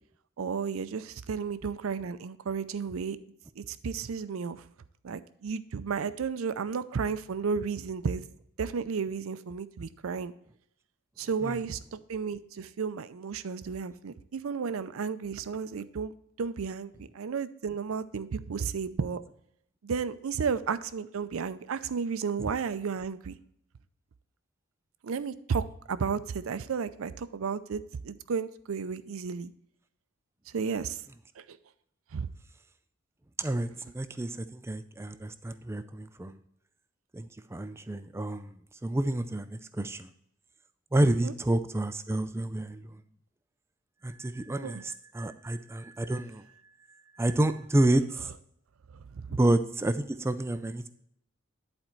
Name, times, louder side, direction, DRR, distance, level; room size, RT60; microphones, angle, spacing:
voice 1, 0.4-3.2 3.6-4.6 5.0-8.2 8.6-10.3 11.2-19.2 19.8-23.4 25.0-29.5 30.5-31.0 31.4-31.6 32.1-32.3 41.2-41.3 44.6-44.8 48.9-49.4, right 5 dB, 80° right, 14 dB, 0.5 m, -33 dB
voice 2, 33.4-36.4 37.1-38.5 38.8-40.1 40.9-43.0 44.0-46.4 47.2-48.3 49.3-50.9, right 1 dB, 10° right, 11 dB, 0.4 m, -29 dB
10.5 x 4.4 x 4.4 m, 0.73 s
head